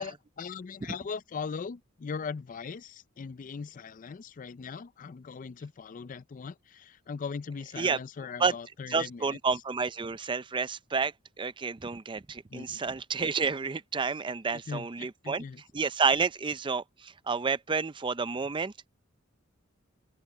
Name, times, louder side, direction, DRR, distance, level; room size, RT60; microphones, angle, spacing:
voice 1, 0.0-9.4 12.5-12.8 14.5-15.6, left 5 dB, 40° left, 0.4 m, -39 dB
voice 2, 8.9-15.4 15.7-18.9, right 5 dB, 25° right, 0.5 m, -30 dB
open air
head